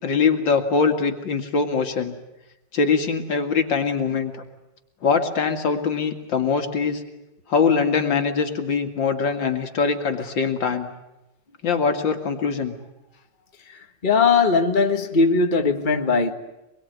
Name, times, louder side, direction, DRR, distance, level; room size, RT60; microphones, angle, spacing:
voice 1, 0.0-2.1 2.7-4.4 5.0-7.0 7.5-10.9 11.6-12.7, left 5 dB, 85° left, 2.9 m, -22 dB
voice 2, 14.0-16.3, left 4 dB, 25° left, 1.7 m, -19 dB
26.5 x 22.0 x 9.4 m
omnidirectional pair, 2.0 m